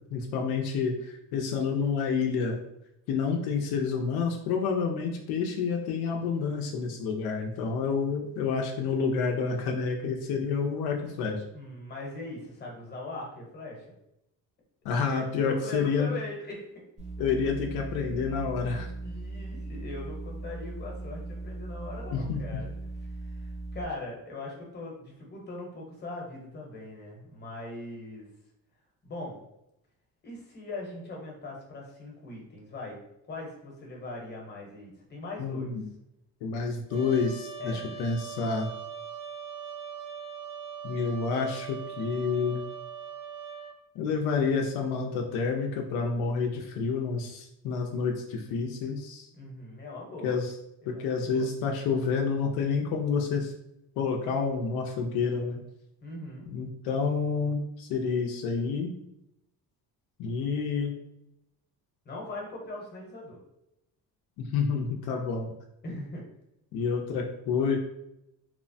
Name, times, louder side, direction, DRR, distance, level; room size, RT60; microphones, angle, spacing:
voice 1, 0.1-2.6 3.1-11.4 14.8-16.1 17.2-18.9 22.1-22.4 35.4-35.8 36.4-38.7 40.8-42.6 44.0-49.3 50.2-50.5 50.9-53.5 54.0-55.6 56.5-58.9 60.2-61.0 64.4-65.5 66.7-67.8, left 5 dB, 85° left, 2 dB, 0.5 m, -29 dB
voice 2, 11.5-13.9 15.1-16.6 19.0-22.7 23.0-28.3 29.0-29.4 30.2-33.0 33.3-35.7 37.6-37.8 49.3-50.4 50.8-51.5 56.0-56.5 62.0-63.4 65.8-66.2, left 2 dB, 30° left, -1 dB, 0.9 m, -40 dB
sound 1, 17.0-23.8, right 2 dB, 20° right, 0.6 m, -38 dB
Trumpet, 36.9-43.8, right 7 dB, 60° right, 0.6 m, -41 dB
2.9 x 2.1 x 2.6 m, 0.82 s
cardioid pair, 120°, 36 cm